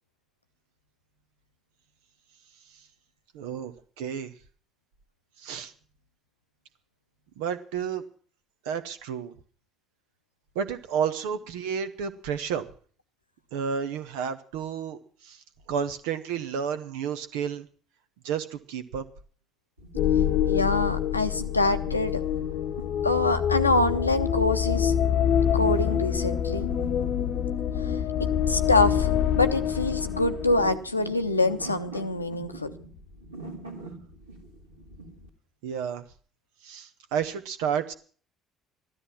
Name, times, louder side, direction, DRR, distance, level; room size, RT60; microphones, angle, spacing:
voice 1, 3.3-4.3 5.4-5.7 7.4-8.0 8.6-9.3 10.5-12.6 13.5-17.7 18.2-19.0 35.6-36.1 36.6-37.9, right 7 dB, 70° right, 10 dB, 1.2 m, -31 dB
sound 1, 19.8-35.3, right 2 dB, 85° right, 2.5 m, -44 dB
sound 2, 20.0-30.8, left 9 dB, 55° left, 0.9 m, -26 dB
voice 2, 20.5-22.2 23.0-24.9 25.5-26.7 27.8-28.0 28.5-32.7, left 2 dB, 90° left, 8 dB, 0.8 m, -25 dB
14.5 x 13.0 x 5.9 m, 0.43 s
figure-of-eight pair, 55°, 0 cm